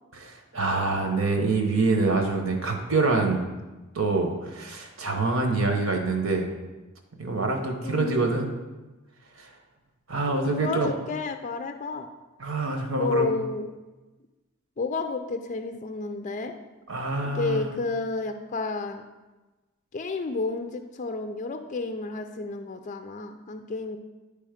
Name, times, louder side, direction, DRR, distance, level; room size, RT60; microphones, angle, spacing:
voice 1, 0.1-3.4 3.9-6.5 7.2-8.5 9.4-9.5 10.1-10.9 12.4-13.2 16.9-17.6, right 3 dB, 70° right, 3 dB, 1.0 m, -25 dB
voice 2, 7.8-8.3 10.5-12.1 13.0-13.7 14.8-16.5 17.2-19.0 19.9-24.0, left 3 dB, 35° left, 7 dB, 0.4 m, -31 dB
9.7 x 3.4 x 5.0 m, 1.1 s
head